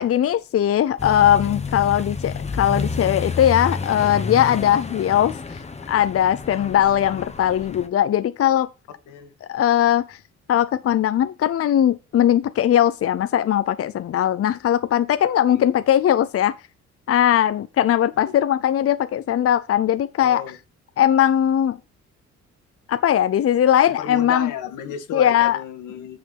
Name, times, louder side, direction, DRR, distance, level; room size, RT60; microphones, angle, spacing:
voice 1, 0.0-5.4 5.9-8.7 9.5-10.2 10.5-16.5 17.1-20.4 21.0-21.8 22.9-24.5 25.1-25.6, left 10 dB, 50° left, 0.6 m, -19 dB
Accelerating revving vroom, 1.0-7.9, left 4 dB, 20° left, 1.3 m, -30 dB
voice 2, 20.2-20.6 23.9-26.2, left 8 dB, 90° left, 1.9 m, -33 dB
9.2 x 5.9 x 4.1 m
cardioid pair, 90°, 30 cm